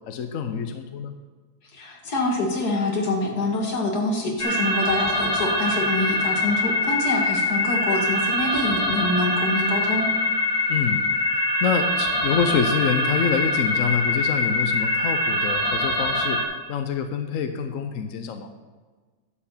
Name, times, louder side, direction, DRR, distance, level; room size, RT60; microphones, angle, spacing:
voice 1, 0.1-1.1 10.7-11.0 11.3-16.4 16.7-18.5, left 7 dB, 60° left, 7 dB, 1.0 m, -26 dB
voice 2, 1.8-10.1, left 2 dB, 75° left, 1 dB, 2.3 m, -25 dB
sound 1, 4.4-16.4, left 2 dB, 10° left, 2.0 m, -24 dB
11.5 x 7.0 x 5.6 m, 1.4 s
omnidirectional pair, 1.7 m